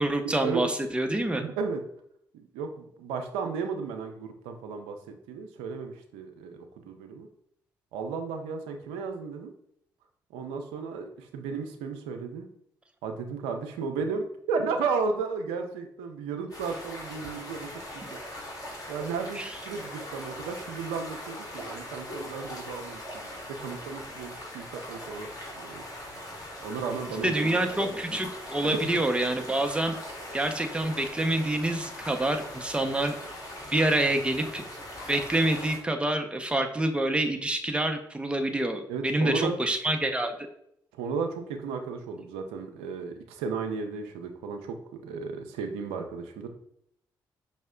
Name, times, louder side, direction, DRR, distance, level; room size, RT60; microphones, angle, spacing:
voice 1, 0.0-1.4 19.4-19.5 27.2-30.0 30.3-33.1 33.7-34.6 35.1-40.4, right 1 dB, 10° right, 5 dB, 0.6 m, -27 dB
voice 2, 1.4-1.8 2.5-5.0 5.3-7.3 7.9-9.5 10.3-12.5 13.0-18.2 18.9-23.3 23.6-25.3 25.6-25.9 26.6-28.0 38.9-39.6 40.9-46.5, right 5 dB, 80° right, 5 dB, 0.5 m, -34 dB
sound 1, 16.5-35.8, left 1 dB, 35° left, 1.7 m, -41 dB
5.4 x 2.0 x 3.7 m, 0.72 s
hypercardioid pair, 45°, 10 cm